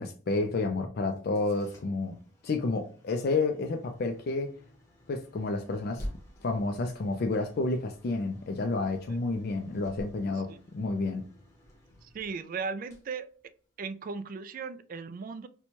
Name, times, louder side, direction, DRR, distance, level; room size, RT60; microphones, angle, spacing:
voice 1, 0.0-2.2 2.4-4.6 5.1-6.1 6.4-11.3, left 3 dB, 50° left, 0.4 m, -30 dB
sound 1, 1.1-14.0, equal, 15° left, 0.9 m, -50 dB
voice 2, 12.0-13.3 13.8-15.5, right 5 dB, 45° right, 0.3 m, -37 dB
4.3 x 2.2 x 2.9 m
head